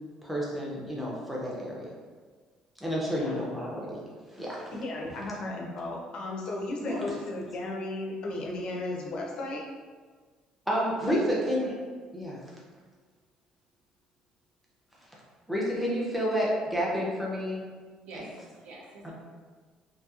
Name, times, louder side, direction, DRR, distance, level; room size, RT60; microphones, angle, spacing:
voice 1, 0.2-1.9 2.8-4.0 4.3-4.7 6.8-7.0 7.3-7.4 10.7-11.7 12.1-12.4 15.5-17.6 18.1-18.2, equal, ahead, -5 dB, 0.5 m, -30 dB
voice 2, 3.0-3.4 4.7-9.6 11.1-11.2, left 2 dB, 50° left, -1 dB, 0.5 m, -35 dB
voice 3, 18.1-19.1, right 2 dB, 70° right, -2 dB, 0.6 m, -47 dB
2.8 x 2.6 x 2.3 m, 1.5 s
cardioid pair, 165°, 2 cm